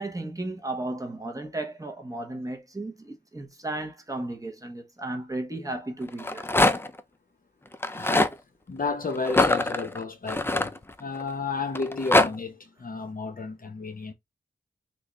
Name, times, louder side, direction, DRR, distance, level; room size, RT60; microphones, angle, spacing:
voice 1, 0.0-6.5, right 2 dB, 15° right, 1.0 m, -34 dB
Rattle, 6.1-7.0 7.7-8.3 9.2-11.2 11.7-12.3, left 2 dB, 10° left, 0.4 m, -23 dB
voice 2, 7.9-8.3 8.7-14.1, left 4 dB, 45° left, 0.9 m, -32 dB
3.7 x 2.5 x 3.1 m
wide cardioid pair, 75°, 20 cm